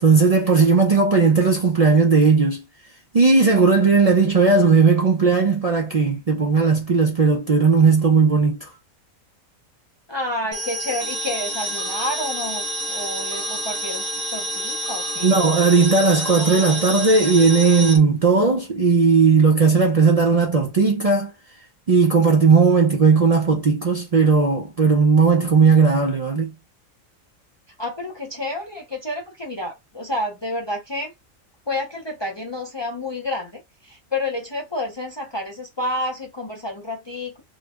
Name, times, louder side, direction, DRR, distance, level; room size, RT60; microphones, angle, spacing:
voice 1, 0.0-2.6 3.1-8.7 15.2-21.3 21.9-26.5, right 4 dB, 75° right, 0.3 m, -16 dB
voice 2, 10.1-14.1 14.3-15.3 27.8-31.1 31.7-37.4, left 1 dB, 45° left, 0.3 m, -29 dB
sound 1, 10.5-18.0, right 1 dB, 40° right, 0.6 m, -28 dB
3.1 x 2.1 x 3.4 m
omnidirectional pair, 1.4 m